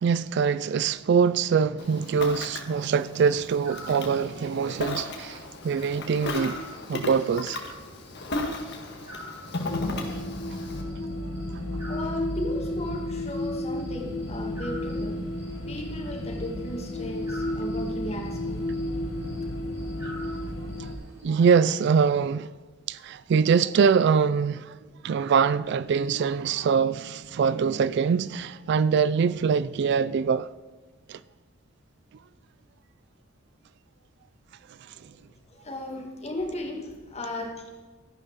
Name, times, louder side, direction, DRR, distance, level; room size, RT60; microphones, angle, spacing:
voice 1, 0.0-7.6 10.1-10.2 11.2-11.3 20.8-20.9 21.2-22.5 22.9-24.8 25.0-30.5 31.1-31.2 34.8-34.9, right 6 dB, 55° right, 0.3 m, -24 dB
Ocean, 1.8-10.8, left 2 dB, 60° left, 1.7 m, -35 dB
sound 1, 3.2-21.2, equal, 15° right, 4.4 m, -48 dB
sound 2, 9.7-21.0, left 1 dB, 80° left, 1.2 m, -32 dB
voice 2, 11.9-15.2 15.7-18.7 35.2-37.9, left 1 dB, 35° left, 1.9 m, -36 dB
13.5 x 11.0 x 4.0 m
head